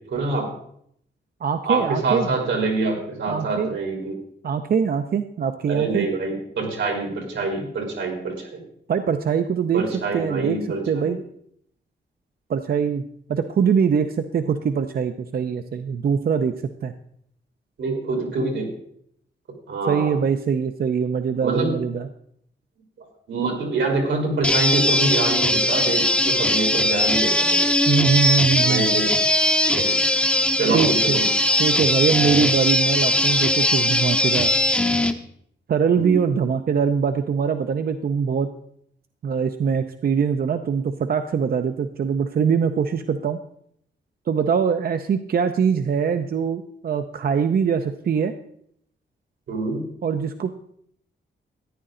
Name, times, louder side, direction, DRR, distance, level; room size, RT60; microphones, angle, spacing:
voice 1, 0.1-0.5 1.6-4.2 5.7-8.6 9.7-11.2 17.8-18.7 19.7-20.1 21.4-21.7 23.3-27.6 28.6-29.1 29.7-30.0 30.5-31.2 35.9-36.2 49.5-49.9, right 3 dB, 90° right, 1 dB, 3.8 m, -25 dB
voice 2, 1.4-2.3 3.3-3.8 4.4-6.1 8.9-9.8 10.1-10.6 10.8-11.2 12.5-13.0 13.3-16.5 16.8-16.9 19.9-22.1 27.9-28.9 30.7-31.2 31.6-34.5 35.7-38.5 39.2-43.4 44.3-48.3 50.0-50.7, right 6 dB, 55° right, 8 dB, 0.6 m, -22 dB
sound 1, 24.4-35.1, left 1 dB, 5° left, 0.7 m, -20 dB
14.0 x 10.5 x 3.8 m, 0.69 s
wide cardioid pair, 165°, 19 cm